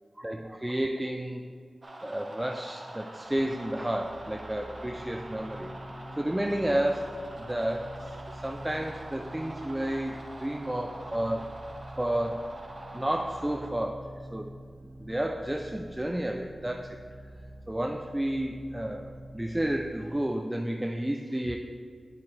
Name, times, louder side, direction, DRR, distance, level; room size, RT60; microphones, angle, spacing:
voice 1, 0.2-1.5 2.0-5.7 6.2-7.1 7.5-8.0 8.3-11.5 12.0-12.5 12.9-14.6 15.0-17.0 17.7-21.6, right 1 dB, 15° right, 4 dB, 0.4 m, -31 dB
sound 1, 1.8-13.7, right 1 dB, 40° right, 0.8 m, -45 dB
sound 2, 3.2-19.7, right 1 dB, 85° left, 1.9 m, -47 dB
7.8 x 6.9 x 3.2 m, 2.1 s
cardioid pair, 45°, 0 cm